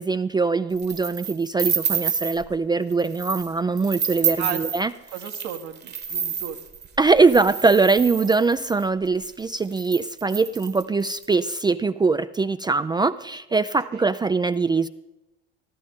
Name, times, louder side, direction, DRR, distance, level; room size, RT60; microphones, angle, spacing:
voice 1, 0.0-4.9 7.0-14.9, right 4 dB, 15° right, 12 dB, 0.4 m, -22 dB
sound 1, 0.8-2.5 2.9-3.5 3.8-8.8 9.4-9.5 9.7-11.2, right 7 dB, 35° right, 1.2 m, -29 dB
voice 2, 5.1-6.6 13.8-14.1, right 10 dB, 75° right, 5 dB, 1.4 m, -34 dB
15.0 x 13.5 x 3.7 m, 0.99 s
hypercardioid pair, 80°, 30 cm